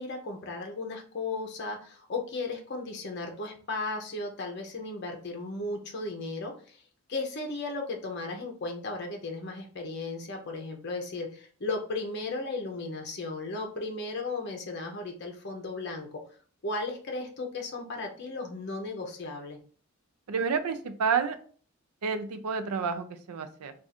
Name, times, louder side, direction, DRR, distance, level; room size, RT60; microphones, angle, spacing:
voice 1, 0.0-6.8 7.1-16.2 16.6-19.6, left 3 dB, 50° left, 2 dB, 0.6 m, -35 dB
voice 2, 20.3-21.4 22.0-23.7, right 5 dB, 90° right, 9 dB, 0.4 m, -29 dB
2.5 x 2.4 x 4.1 m, 0.43 s
head